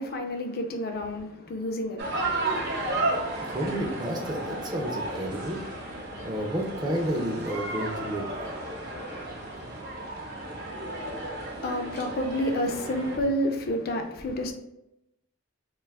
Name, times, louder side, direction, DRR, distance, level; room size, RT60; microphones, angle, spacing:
voice 1, 0.0-3.3 11.4-14.5, equal, 50° left, 0.4 m, -30 dB
sound 1, 2.0-13.2, right 2 dB, 55° right, 0.6 m, -33 dB
voice 2, 3.4-5.6 6.2-8.2, right 1 dB, 20° right, 0.4 m, -31 dB
2.5 x 2.3 x 3.3 m
head